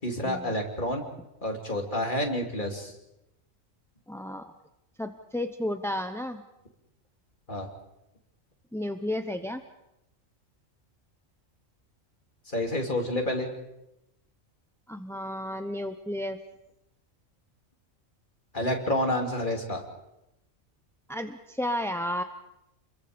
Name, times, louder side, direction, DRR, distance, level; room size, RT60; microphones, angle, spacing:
voice 1, 0.0-1.0 1.4-2.9 7.5-7.7 12.5-13.5 18.5-19.8, left 1 dB, 35° left, 2 dB, 3.2 m, -29 dB
voice 2, 4.1-4.5 5.0-6.4 8.7-9.6 14.9-16.4 21.1-22.2, left 1 dB, 5° left, 8 dB, 0.6 m, -32 dB
29.0 x 22.0 x 5.2 m, 0.87 s
omnidirectional pair, 1.4 m